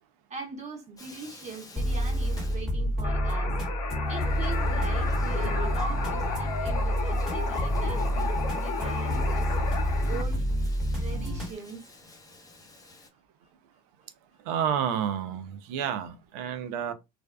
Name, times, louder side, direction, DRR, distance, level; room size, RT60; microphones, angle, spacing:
voice 1, 0.3-3.6 4.1-9.5 10.1-10.4 11.0-11.8 14.8-15.0, right 4 dB, 35° right, 1.0 m, -41 dB
Bathtub (filling or washing), 1.0-3.2 3.5-3.6 4.0-13.1, left 3 dB, 15° left, 0.7 m, -52 dB
sound 1, 1.8-11.5, equal, ahead, 1.1 m, -28 dB
sound 2, 3.0-10.2, left 5 dB, 85° left, 0.6 m, -34 dB
voice 2, 14.5-16.9, right 8 dB, 75° right, 0.5 m, -30 dB
2.5 x 2.2 x 2.2 m
supercardioid pair, 90°, 21 cm